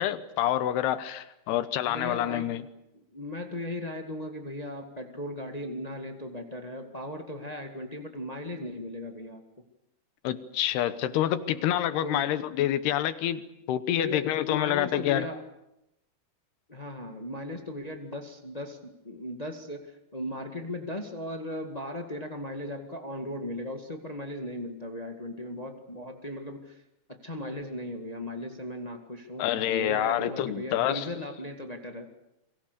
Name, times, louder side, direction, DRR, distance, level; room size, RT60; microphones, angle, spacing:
voice 1, 0.0-2.6 10.2-13.4 13.7-15.3 29.4-31.1, left 12 dB, 80° left, 12 dB, 3.1 m, -27 dB
voice 2, 1.8-2.5 2.9-9.4 12.0-12.3 13.9-15.4 16.7-26.8 27.1-32.1, left 1 dB, 60° left, 4 dB, 0.4 m, -37 dB
30.0 x 23.5 x 6.8 m, 0.85 s
omnidirectional pair, 4.6 m